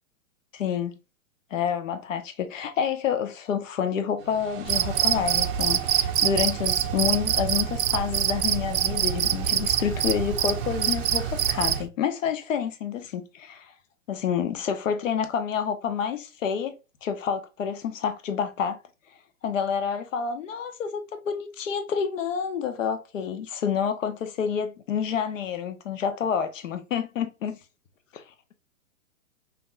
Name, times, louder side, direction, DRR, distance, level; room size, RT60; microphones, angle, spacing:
voice 1, 0.5-0.9 1.5-13.7 14.1-16.7 17.0-18.8 19.4-27.5 28.1-28.2, left 7 dB, 60° left, 1.2 m, -28 dB
sound 1, 4.2-11.8, right 8 dB, 45° right, 1.1 m, -37 dB
Cricket, 4.7-11.9, right 10 dB, 75° right, 0.6 m, -25 dB
5.9 x 2.9 x 2.5 m
hypercardioid pair, 155°, 42 cm